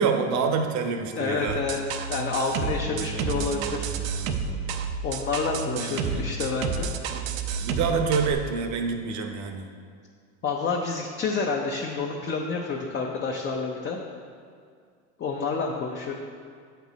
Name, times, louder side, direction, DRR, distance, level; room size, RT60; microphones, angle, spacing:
voice 1, 0.0-1.6 2.9-4.7 5.7-6.3 7.1-7.2 7.6-9.6, right 5 dB, 45° right, 5 dB, 0.8 m, -28 dB
voice 2, 1.1-3.9 5.0-6.9 7.4-7.5 10.4-14.0 15.2-16.1, left 4 dB, 25° left, 0 dB, 0.6 m, -29 dB
sound 1, 1.5-8.3, right 5 dB, 75° right, 0.7 m, -30 dB
8.1 x 4.6 x 4.0 m, 2.2 s
supercardioid pair, 105°, 41 cm